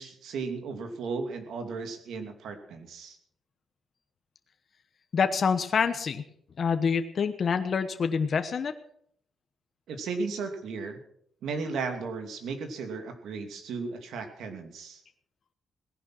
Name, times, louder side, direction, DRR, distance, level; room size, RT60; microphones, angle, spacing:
voice 1, 0.0-3.2 9.9-11.0 11.4-15.0, right 4 dB, 85° right, 6 dB, 2.7 m, -35 dB
voice 2, 5.1-6.2 6.6-8.7, left 6 dB, 45° left, 8 dB, 1.1 m, -26 dB
18.0 x 11.0 x 6.1 m, 0.68 s
cardioid pair, 140°, 0 cm